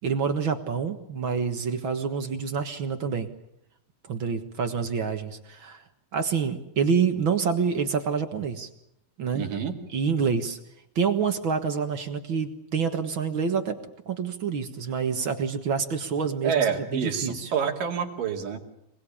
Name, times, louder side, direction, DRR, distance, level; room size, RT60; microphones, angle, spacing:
voice 1, 0.0-3.3 4.1-5.8 6.1-8.7 9.2-9.4 9.9-10.6 11.0-13.8 14.1-16.7 16.9-17.5, right 6 dB, 50° right, 7 dB, 1.7 m, -27 dB
voice 2, 9.3-9.8 16.4-18.6, right 7 dB, 85° right, 1 dB, 4.2 m, -27 dB
26.0 x 19.5 x 8.6 m, 0.83 s
omnidirectional pair, 3.8 m